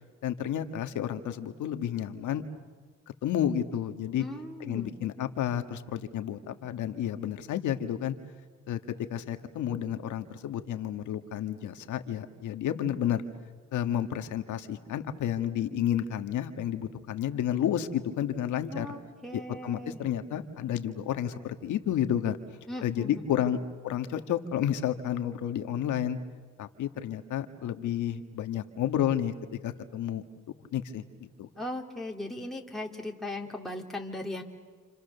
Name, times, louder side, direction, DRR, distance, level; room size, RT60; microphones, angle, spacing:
voice 1, 0.2-2.4 3.2-4.2 4.6-8.1 8.7-13.2 13.7-18.9 19.3-22.4 22.8-23.6 23.8-26.2 26.6-29.3 29.6-30.2 30.7-31.5, left 10 dB, 80° left, 8 dB, 1.7 m, -31 dB
voice 2, 4.2-4.9 18.7-20.0 22.7-23.5 31.6-34.4, left 1 dB, ahead, -1 dB, 2.5 m, -38 dB
28.5 x 28.5 x 6.8 m, 1.5 s
cardioid pair, 90°, 30 cm